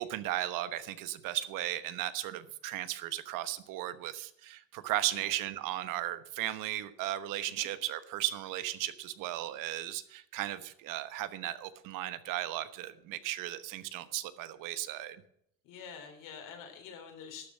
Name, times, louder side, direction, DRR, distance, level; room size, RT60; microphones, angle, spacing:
voice 1, 0.0-15.2, right 14 dB, 75° right, 12 dB, 1.1 m, -36 dB
voice 2, 15.6-17.5, left 7 dB, 70° left, 5 dB, 3.4 m, -47 dB
12.5 x 7.1 x 8.2 m, 0.72 s
cardioid pair, 150°, 33 cm